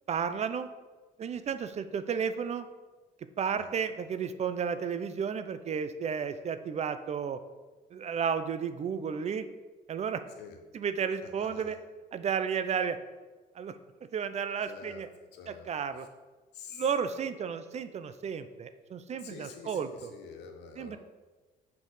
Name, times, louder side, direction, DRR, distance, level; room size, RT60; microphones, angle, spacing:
voice 1, 0.1-0.7 1.2-2.7 3.4-7.4 7.9-9.5 9.9-10.2 10.7-11.8 12.1-13.0 13.5-13.8 14.1-15.1 15.5-16.1 16.7-20.1 20.8-21.0, right 7 dB, 40° right, 11 dB, 0.6 m, -32 dB
voice 2, 11.2-11.8 14.6-15.0 15.3-15.7 16.5-16.8 19.2-21.0, left 5 dB, 80° left, 4 dB, 1.3 m, -47 dB
6.5 x 5.5 x 6.5 m, 1.3 s
cardioid pair, 110°, 17 cm